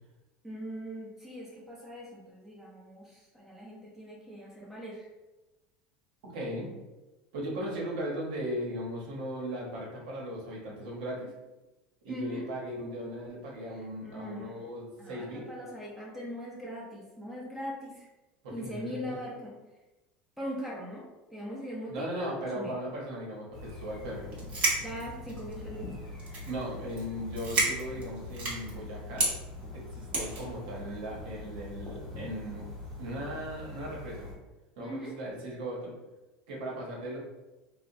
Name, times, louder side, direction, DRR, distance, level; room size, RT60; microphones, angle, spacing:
voice 1, 0.4-5.1 12.1-12.5 13.7-14.6 15.0-18.1 18.5-19.5 20.4-21.1 21.3-22.8 24.8-25.9 34.8-35.1, equal, 10° right, -5 dB, 0.6 m, -40 dB
voice 2, 6.3-6.7 7.3-11.3 12.0-15.5 18.4-19.0 21.9-24.3 26.5-29.2 29.7-32.7 33.0-34.3 34.8-35.9 36.5-37.2, equal, 85° right, -3 dB, 0.9 m, -37 dB
sound 1, 23.5-34.3, left 2 dB, 10° left, 1.0 m, -43 dB
sound 2, 24.3-25.6 26.2-26.6 26.9-27.0 27.3-28.7 29.2-29.3 30.1-30.5, right 2 dB, 35° right, 0.9 m, -29 dB
2.8 x 2.1 x 2.6 m, 1.1 s
supercardioid pair, 135°, 4 cm